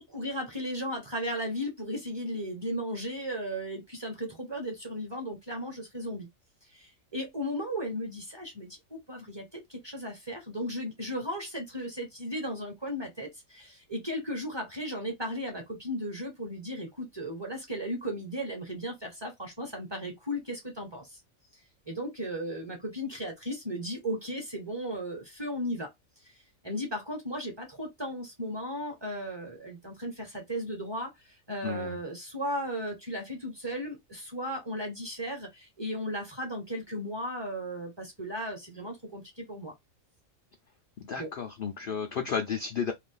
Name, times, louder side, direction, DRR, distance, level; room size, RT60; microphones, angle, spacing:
voice 1, 0.0-6.3 6.7-21.2 21.9-25.9 26.6-39.7 41.2-41.3, equal, 20° right, 0.9 m, -36 dB
voice 2, 31.6-32.0 41.0-42.9, left 6 dB, 60° left, 0.6 m, -32 dB
2.6 x 2.4 x 3.7 m
omnidirectional pair, 1.4 m